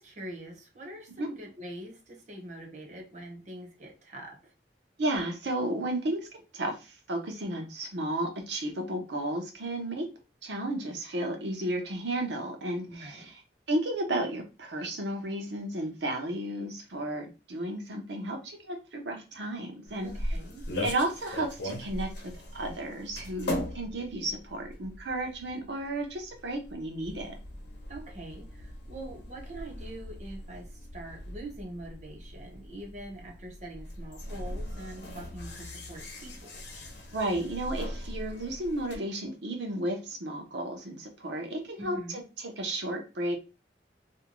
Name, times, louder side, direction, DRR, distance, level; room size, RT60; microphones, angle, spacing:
voice 1, 0.0-4.4 12.8-13.3 20.0-20.7 27.9-36.6 41.8-42.2, right 1 dB, 40° right, 0 dB, 0.7 m, -44 dB
voice 2, 5.0-6.3 6.5-10.1 10.4-13.4 13.7-20.4 20.8-22.1 22.5-27.3 37.1-43.4, right 1 dB, 80° right, 3 dB, 0.7 m, -33 dB
sound 1, 19.9-39.0, left 1 dB, 85° left, 0.7 m, -40 dB
2.6 x 2.2 x 2.9 m, 0.30 s
head